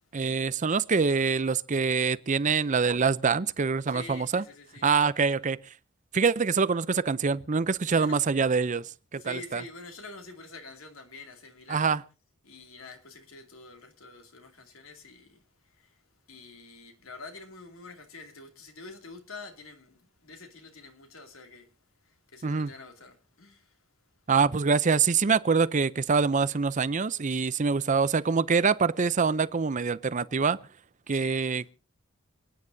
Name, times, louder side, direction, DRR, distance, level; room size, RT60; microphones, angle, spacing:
voice 1, 0.1-4.4 4.8-5.6 6.1-9.6 11.7-12.0 22.4-22.7 24.3-30.6 31.1-31.7, right 5 dB, 35° right, 0.5 m, -25 dB
voice 2, 3.9-4.9 7.8-8.2 9.1-12.0 12.4-16.0 16.3-21.7 22.0-23.8 31.1-31.7, left 3 dB, 75° left, 2.6 m, -47 dB
28.5 x 9.7 x 2.7 m
head